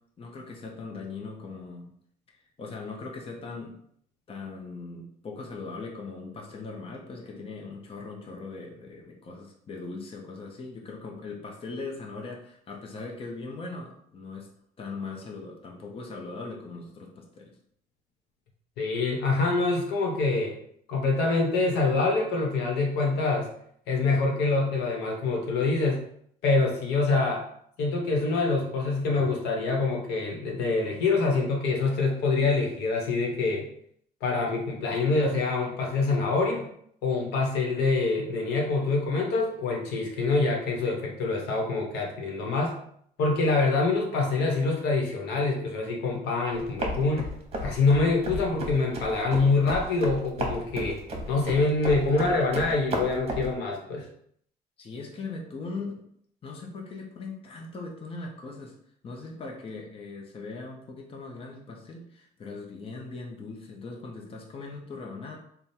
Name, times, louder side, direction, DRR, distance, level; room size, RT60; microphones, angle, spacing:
voice 1, 0.2-1.9 2.3-3.7 4.3-14.5 14.8-17.6 54.8-56.0 56.4-58.7 59.0-65.4, left 3 dB, 35° left, 0 dB, 0.8 m, -40 dB
voice 2, 18.8-20.5 20.9-23.5 23.9-26.0 26.4-27.4 27.8-33.7 34.2-36.7 37.0-42.8 43.2-47.3 47.6-51.0 51.3-54.1, left 3 dB, 85° left, 0 dB, 1.1 m, -25 dB
sound 1, 46.5-53.5, right 1 dB, 35° right, 1.0 m, -34 dB
3.5 x 2.3 x 4.3 m, 0.67 s
cardioid pair, 110°, 17 cm